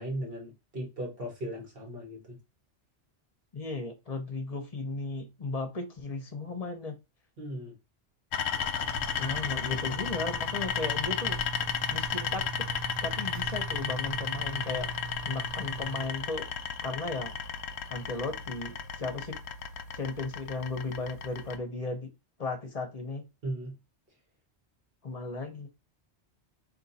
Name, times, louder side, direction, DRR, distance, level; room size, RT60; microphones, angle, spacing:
voice 1, 0.0-2.4 7.4-7.7 23.4-23.7, right 1 dB, 55° right, 1.8 m, -37 dB
voice 2, 3.5-7.0 9.2-11.4 11.9-12.5 13.0-14.9 15.3-16.5 16.8-17.3 17.9-19.4 19.9-22.1 22.4-23.3 25.0-25.7, left 3 dB, 40° left, 0.7 m, -35 dB
sound 1, 8.3-21.6, left 7 dB, 70° left, 0.8 m, -34 dB
sound 2, 8.5-16.1, right 5 dB, 70° right, 1.0 m, -41 dB
3.9 x 2.7 x 4.0 m
omnidirectional pair, 1.2 m